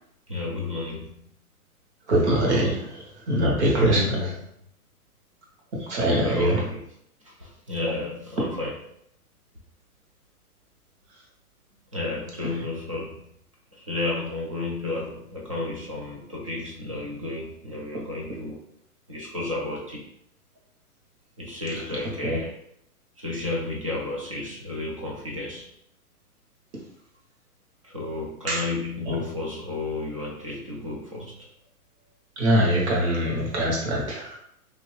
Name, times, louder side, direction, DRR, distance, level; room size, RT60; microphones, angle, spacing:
voice 1, 0.3-1.1 3.7-4.3 6.0-6.8 7.2-8.7 11.9-13.3 13.7-18.6 19.1-20.0 21.4-22.5 23.2-25.7 27.8-31.4, left 2 dB, 25° right, -3 dB, 0.3 m, -32 dB
voice 2, 2.1-4.3 5.7-6.6 21.9-22.4 28.5-28.6 29.1-29.2 32.4-34.4, equal, 45° right, -2 dB, 1.2 m, -23 dB
2.8 x 2.8 x 3.1 m, 0.72 s
hypercardioid pair, 150°, 45 cm